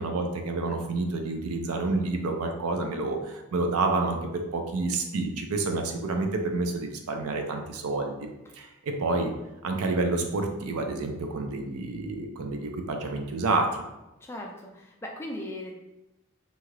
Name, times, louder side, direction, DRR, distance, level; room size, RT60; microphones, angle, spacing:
voice 1, 0.0-8.3 8.6-9.3 9.6-13.8, right 3 dB, 90° right, 4 dB, 0.5 m, -29 dB
voice 2, 14.2-15.7, left 1 dB, 10° left, -1 dB, 0.3 m, -38 dB
2.8 x 2.4 x 3.1 m, 0.97 s
head